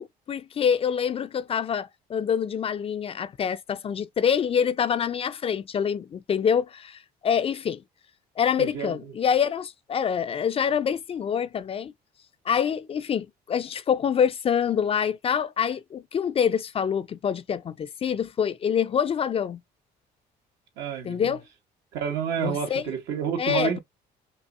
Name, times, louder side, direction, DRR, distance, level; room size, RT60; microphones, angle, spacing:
voice 1, 0.0-7.8 8.4-11.9 12.5-19.6 21.0-21.4 22.4-22.8 23.4-23.8, left 7 dB, 35° left, 0.4 m, -26 dB
voice 2, 8.6-8.9 20.8-21.4 21.9-23.8, right 7 dB, 85° right, 1.8 m, -29 dB
5.3 x 2.8 x 2.5 m
cardioid pair, 110°, 17 cm